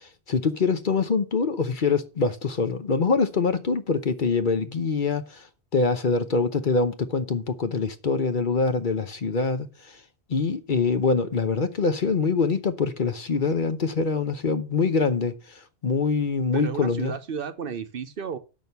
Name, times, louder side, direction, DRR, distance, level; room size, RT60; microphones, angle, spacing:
voice 1, 0.0-5.4 5.7-9.7 10.3-15.3 15.8-17.2, left 4 dB, 50° left, 0.9 m, -24 dB
voice 2, 16.5-18.4, right 6 dB, 60° right, 0.9 m, -33 dB
7.3 x 6.2 x 6.8 m
omnidirectional pair, 1.1 m